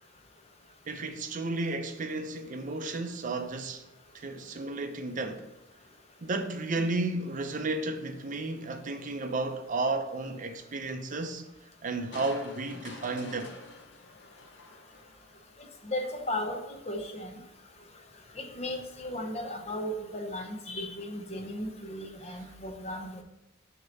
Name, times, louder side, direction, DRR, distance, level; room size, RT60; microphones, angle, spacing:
voice 1, 0.9-3.8 4.1-5.4 6.2-11.4 11.8-13.5, right 2 dB, 45° right, 0.6 m, -33 dB
Crushing, 12.1-15.5 15.9-16.0, left 2 dB, 65° left, 0.9 m, -47 dB
voice 2, 15.8-17.4 18.4-23.2, left 1 dB, 35° left, 0.7 m, -36 dB
6.4 x 2.9 x 5.2 m
head